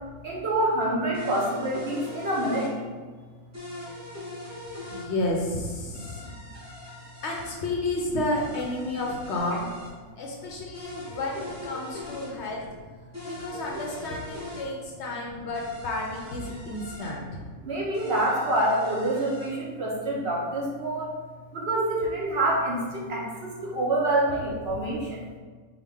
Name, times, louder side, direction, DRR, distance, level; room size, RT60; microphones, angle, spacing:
voice 1, 0.2-2.8 17.6-21.1 21.5-25.2, right 1 dB, 55° right, -4 dB, 0.8 m, -26 dB
sound 1, 1.1-2.7 3.5-5.1 5.9-7.5 8.3-9.9 10.7-12.3 13.1-14.7 15.5-17.1 17.9-19.5, left 2 dB, 15° right, 0.6 m, -41 dB
voice 2, 4.9-6.3 7.2-9.7 10.2-12.6 13.2-17.4, left 2 dB, 65° left, -1 dB, 0.8 m, -31 dB
4.9 x 2.2 x 3.4 m, 1.4 s
omnidirectional pair, 1.4 m